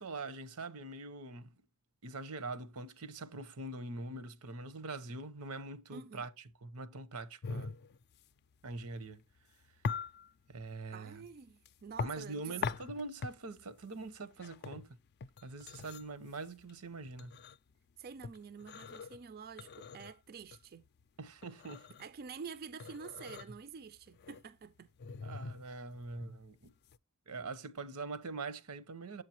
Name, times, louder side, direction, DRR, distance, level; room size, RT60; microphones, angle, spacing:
voice 1, 0.0-1.5 2.0-7.7 8.6-9.2 10.5-11.2 12.0-14.9 15.4-17.4 21.2-22.0 25.2-26.7 27.3-29.2, right 3 dB, 90° right, 1.1 m, -43 dB
voice 2, 5.9-6.3 10.9-12.6 18.0-20.8 22.0-24.9, right 6 dB, 45° right, 0.4 m, -48 dB
sound 1, 7.4-27.0, left 5 dB, 50° left, 0.4 m, -44 dB
8.2 x 7.8 x 2.9 m
head